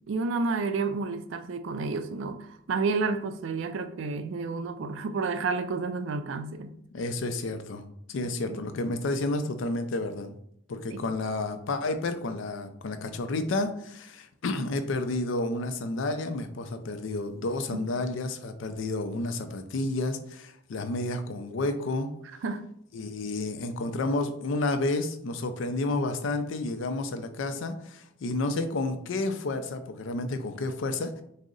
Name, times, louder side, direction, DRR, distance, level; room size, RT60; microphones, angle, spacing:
voice 1, 0.1-6.7 8.4-8.6 10.9-11.0 17.7-17.8 22.4-22.6, right 4 dB, 70° right, 0.3 m, -30 dB
voice 2, 6.9-10.3 10.7-22.1 22.9-31.2, left 2 dB, 70° left, 0.4 m, -31 dB
3.7 x 2.0 x 3.7 m
head